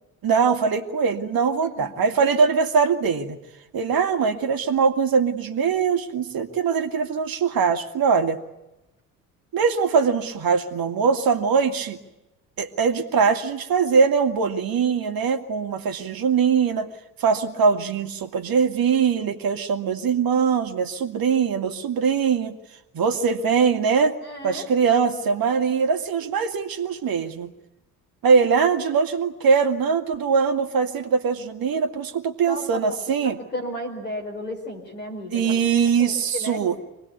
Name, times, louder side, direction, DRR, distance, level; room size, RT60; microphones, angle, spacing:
voice 1, 0.2-3.4 3.7-8.4 9.5-12.0 12.6-16.9 17.2-22.6 22.9-24.2 24.4-27.5 28.2-33.4 35.3-36.8, right 5 dB, 50° right, 7 dB, 2.2 m, -22 dB
voice 2, 1.6-1.9 24.2-24.7 32.5-32.8 33.2-35.5 36.0-36.6, equal, 85° left, 2 dB, 5.0 m, -33 dB
26.0 x 19.5 x 9.6 m, 0.98 s
figure-of-eight pair, 50°, 47 cm